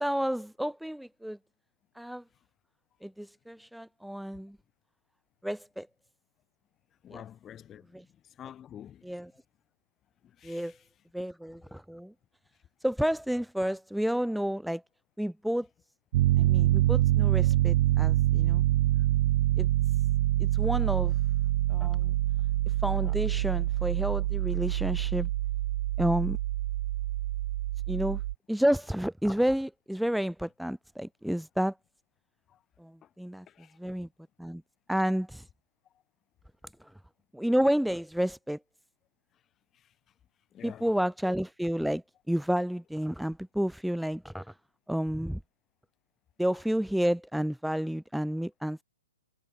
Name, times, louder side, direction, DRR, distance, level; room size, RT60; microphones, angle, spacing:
voice 1, 0.0-1.4 2.0-2.2 3.0-4.6 5.4-5.9 7.1-7.2 7.9-8.0 9.0-9.3 10.4-10.7 11.1-12.1 12.8-14.8 15.2-15.7 16.4-18.6 19.6-19.7 20.4-21.1 21.7-22.1 22.8-25.3 26.0-26.4 27.9-28.2 28.5-31.7 32.8-32.9 33.2-33.5 33.8-34.1 34.4-34.6 34.9-35.4 37.3-38.6 40.6-44.5 44.9-45.4 46.4-48.8, equal, ahead, 0.8 m, -30 dB
voice 2, 7.0-7.9 8.4-9.1 10.4-10.8 32.5-32.6 33.5-33.8 40.5-40.9, left 10 dB, 20° left, 3.2 m, -48 dB
Piano, 16.1-28.3, right 15 dB, 50° right, 0.6 m, -26 dB
hypercardioid pair, 125°, 0 cm